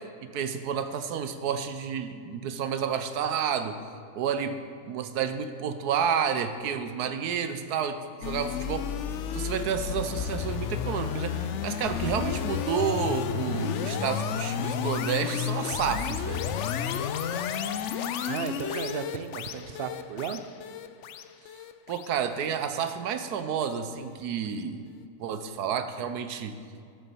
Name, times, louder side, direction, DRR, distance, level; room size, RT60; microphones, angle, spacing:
voice 1, 0.2-3.8 4.1-4.6 4.8-8.9 9.3-16.5 21.9-24.9 25.2-26.5, right 7 dB, 80° right, 9 dB, 1.3 m, -30 dB
sound 1, 8.2-23.4, left 8 dB, 65° left, 0.7 m, -32 dB
voice 2, 18.3-20.4, right 7 dB, 60° right, 10 dB, 0.6 m, -34 dB
11.5 x 7.1 x 7.0 m, 2.3 s
omnidirectional pair, 1.6 m